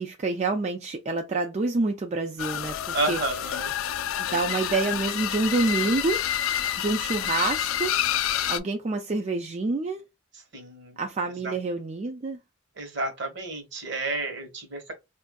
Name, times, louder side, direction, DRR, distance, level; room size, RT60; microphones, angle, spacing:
voice 1, 0.0-3.2 4.2-7.9 8.5-10.0 11.0-12.4, right 3 dB, 35° right, 0.4 m, -28 dB
sound 1, 2.4-8.6, left 10 dB, 85° left, 0.4 m, -28 dB
voice 2, 2.9-3.7 10.5-11.0 11.4-11.5 12.8-14.9, right 2 dB, 60° right, 1.1 m, -31 dB
4.3 x 2.5 x 2.3 m
head